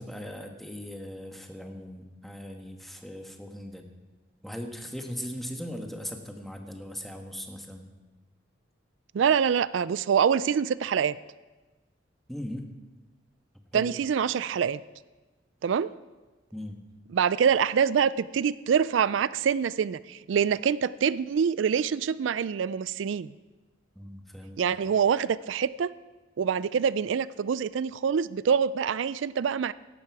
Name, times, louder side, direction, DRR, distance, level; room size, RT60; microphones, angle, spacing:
voice 1, 0.0-3.8 4.4-7.9 12.3-12.7 13.7-13.9 16.5-16.8 23.9-24.6, equal, ahead, 3 dB, 1.3 m, -39 dB
voice 2, 9.1-11.2 13.7-14.8 15.6-15.9 17.1-23.3 24.6-25.9 26.4-29.7, right 7 dB, 85° right, 18 dB, 0.4 m, -25 dB
16.5 x 12.0 x 4.8 m, 1.2 s
head